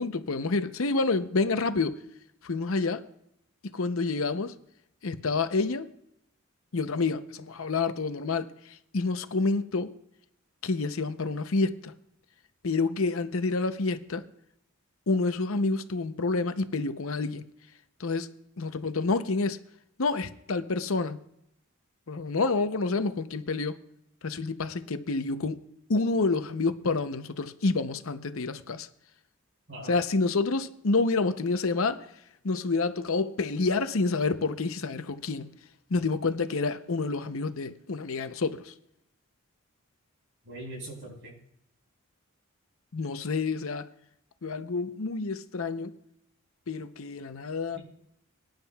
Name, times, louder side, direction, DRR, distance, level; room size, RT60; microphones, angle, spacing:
voice 1, 0.0-2.0 2.4-3.1 3.6-4.5 5.0-5.9 6.7-8.5 8.9-9.9 10.6-11.9 12.6-14.2 15.1-17.4 18.0-19.6 20.0-21.2 22.1-23.7 24.2-25.6 25.9-28.9 29.8-32.1 32.4-35.5 35.9-38.7 42.9-43.9 44.4-46.0 46.7-47.8, left 3 dB, 75° left, 0.7 m, -28 dB
voice 2, 40.4-41.4, right 1 dB, 60° right, 5.1 m, -41 dB
23.5 x 10.5 x 2.3 m
head